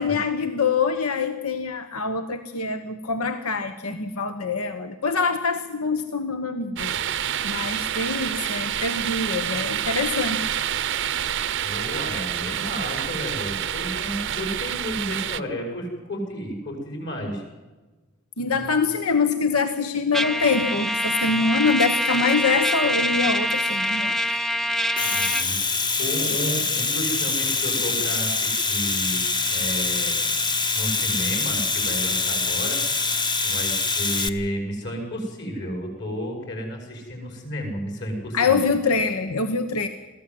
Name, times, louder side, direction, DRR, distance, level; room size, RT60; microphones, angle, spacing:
voice 1, 0.0-10.5 18.4-24.2 38.3-39.9, left 4 dB, 85° left, 9 dB, 1.2 m, -24 dB
sound 1, 6.8-15.4, right 10 dB, 55° right, 0.7 m, -28 dB
voice 2, 11.6-17.4 18.4-18.8 25.1-29.2 29.5-30.2 30.7-32.8 33.4-38.6, equal, 55° left, 3 dB, 6.2 m, -32 dB
Trumpet, 20.1-25.5, left 1 dB, ahead, 0.6 m, -25 dB
Domestic sounds home sounds, 24.8-34.3, left 4 dB, 20° left, 0.8 m, -24 dB
22.5 x 16.0 x 7.8 m, 1.2 s
head